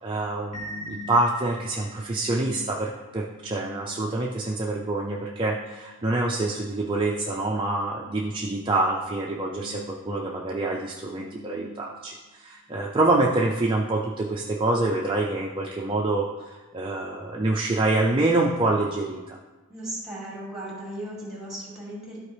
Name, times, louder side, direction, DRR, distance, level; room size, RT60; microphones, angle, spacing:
voice 1, 0.0-16.3 16.7-19.4, right 2 dB, 25° right, -1 dB, 0.5 m, -26 dB
sound 1, 0.5-12.2, left 2 dB, 35° left, 1.4 m, -45 dB
voice 2, 19.7-22.2, right 1 dB, 5° right, -5 dB, 2.5 m, -36 dB
12.5 x 4.4 x 3.4 m, 1.2 s
head